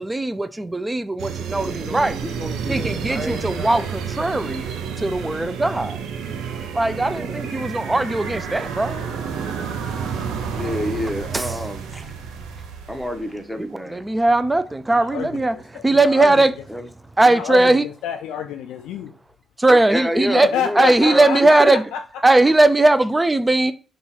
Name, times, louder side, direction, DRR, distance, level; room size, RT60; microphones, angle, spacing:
voice 1, 0.0-2.2 2.7-4.6 5.0-6.0 6.7-9.0 11.3-11.6 13.6-15.6 15.8-16.5 17.2-17.9 19.6-20.5 20.8-21.8 22.2-23.7, right 2 dB, 20° right, 0.4 m, -19 dB
sound 1, 1.2-13.5, right 6 dB, 75° right, 0.5 m, -30 dB
voice 2, 1.9-3.9 7.1-7.4 10.5-12.1 12.9-14.1 16.7-16.8 19.7-21.3 21.6-21.7, equal, 5° right, 0.8 m, -28 dB
voice 3, 15.0-16.4 17.2-19.1 20.5-22.0, left 8 dB, 75° left, 0.3 m, -28 dB
3.8 x 2.4 x 4.2 m
hypercardioid pair, 40°, 0 cm